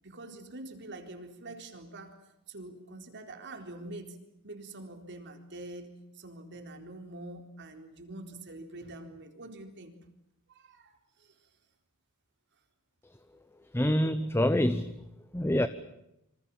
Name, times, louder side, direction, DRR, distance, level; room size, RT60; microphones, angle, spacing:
voice 1, 0.0-2.2 2.5-4.2 4.4-9.9 10.5-11.3, right 2 dB, 55° right, 5 dB, 4.2 m, -45 dB
voice 2, 13.7-14.9 15.3-15.7, left 1 dB, 10° left, 12 dB, 0.9 m, -26 dB
27.5 x 26.0 x 7.3 m, 0.83 s
head